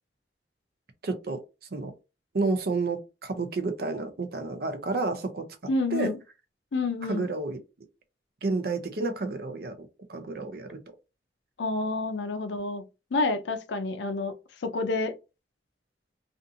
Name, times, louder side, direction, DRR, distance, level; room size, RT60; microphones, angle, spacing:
voice 1, 1.0-1.4 1.7-1.9 2.3-5.4 5.9-6.1 7.1-7.6 8.4-9.8 10.1-10.8, right 3 dB, 55° right, 0.5 m, -30 dB
voice 2, 5.7-6.2 6.7-7.3 11.6-12.8 13.1-14.3 14.6-15.1, left 3 dB, 85° left, 0.5 m, -28 dB
2.6 x 2.5 x 2.6 m
head